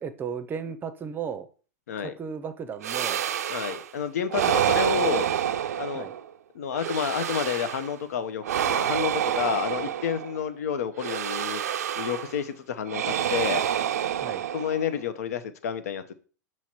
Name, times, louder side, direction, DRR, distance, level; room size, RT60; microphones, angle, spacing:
voice 1, 0.0-1.5 2.0-3.2 4.4-4.7 5.9-6.1 14.1-14.4, right 6 dB, 20° right, 0.6 m, -35 dB
sound 1, 2.8-3.9 4.3-6.3 6.7-8.0 8.4-10.4 11.0-12.4 12.9-15.0, right 10 dB, 65° right, 0.4 m, -28 dB
voice 2, 3.5-5.3 5.8-6.1 6.5-11.6 12.0-13.7 14.5-16.1, left 8 dB, 65° left, 0.7 m, -30 dB
7.0 x 3.1 x 4.3 m
figure-of-eight pair, 95°, 9 cm